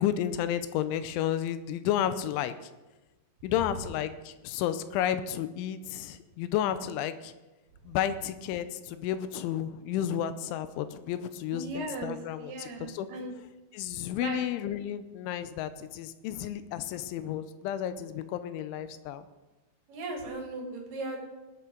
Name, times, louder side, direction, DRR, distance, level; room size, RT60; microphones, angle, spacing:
voice 1, 0.0-2.5 3.4-7.3 7.9-12.5 12.8-13.1 13.7-19.2, left 10 dB, 85° left, 12 dB, 3.1 m, -32 dB
voice 2, 11.5-13.4 14.2-14.4 19.9-21.2, right 2 dB, 55° right, 0 dB, 3.4 m, -37 dB
20.0 x 8.4 x 3.9 m, 1.1 s
omnidirectional pair, 5.4 m